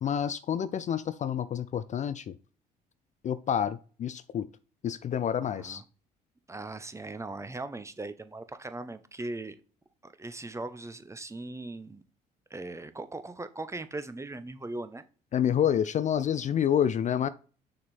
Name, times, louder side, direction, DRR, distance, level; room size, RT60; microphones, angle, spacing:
voice 1, 0.0-2.4 3.2-4.5 4.8-5.8 15.3-17.3, left 9 dB, 35° left, 0.4 m, -28 dB
voice 2, 5.4-5.8 6.5-9.6 10.0-12.0 12.5-15.0, right 2 dB, 15° right, 0.7 m, -39 dB
6.6 x 3.7 x 4.2 m
hypercardioid pair, 55°, 20 cm